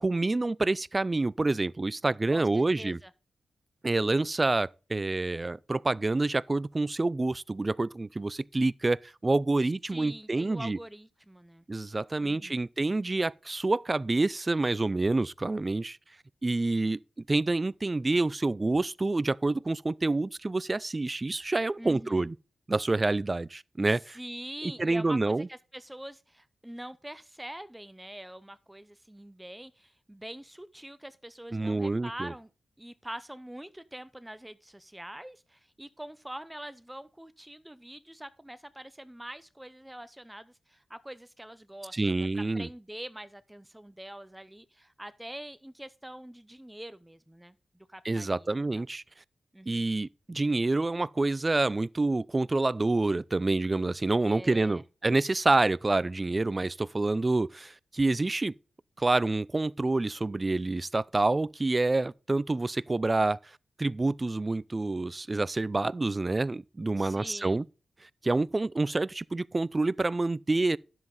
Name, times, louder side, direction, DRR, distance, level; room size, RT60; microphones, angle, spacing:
voice 1, 0.0-3.0 3.8-10.8 11.7-16.0 16.4-17.0 17.3-22.4 22.7-24.2 24.6-25.5 31.5-32.3 41.9-42.7 48.0-49.0 49.7-58.5 59.0-63.5 63.8-67.6 68.0-70.8, right 2 dB, 35° right, 0.3 m, -27 dB
voice 2, 2.3-3.1 9.6-11.6 12.2-12.6 21.8-22.3 24.1-32.5 32.8-48.5 48.7-48.8 49.5-49.8 54.3-54.8 67.0-67.6, right 1 dB, 10° right, 0.7 m, -44 dB
10.5 x 7.5 x 3.8 m
supercardioid pair, 45°, 0 cm